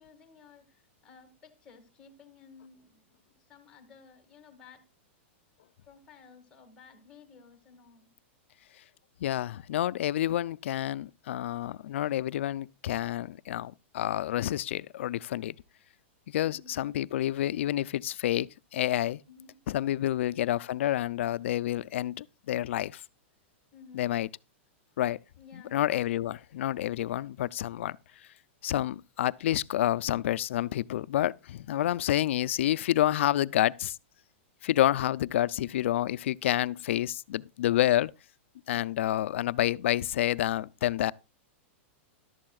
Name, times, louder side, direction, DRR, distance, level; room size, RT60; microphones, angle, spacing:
voice 1, 0.0-3.2 3.5-4.8 5.9-8.1 16.4-16.8 19.3-19.6 23.7-24.1 25.4-25.8, left 5 dB, 10° left, 2.0 m, -54 dB
voice 2, 9.2-15.6 16.3-19.2 19.7-23.0 23.9-24.3 25.0-25.2 25.5-28.0 28.6-34.0 34.6-38.1 38.7-41.1, left 13 dB, 70° left, 0.5 m, -29 dB
14.5 x 12.0 x 2.4 m
supercardioid pair, 155°, 7 cm